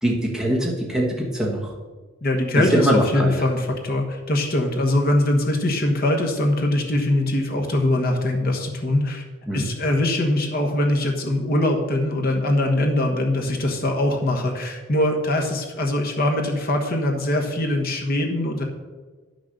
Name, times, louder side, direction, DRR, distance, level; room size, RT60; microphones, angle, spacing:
voice 1, 0.0-1.7 2.5-3.3 9.5-9.7, right 1 dB, 5° right, -3 dB, 1.3 m, -22 dB
voice 2, 2.2-9.2 9.5-18.6, left 1 dB, 45° left, 2 dB, 1.3 m, -22 dB
10.5 x 6.3 x 6.5 m, 1.3 s
head